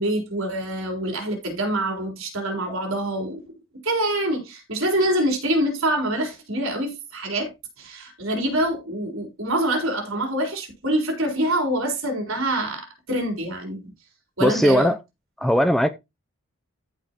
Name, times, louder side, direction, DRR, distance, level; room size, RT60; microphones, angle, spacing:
voice 1, 0.0-3.4 3.8-13.9 14.4-14.9, right 1 dB, 75° right, 3.9 m, -25 dB
voice 2, 14.4-15.0 15.4-15.9, equal, ahead, 0.4 m, -18 dB
14.0 x 5.2 x 2.9 m
head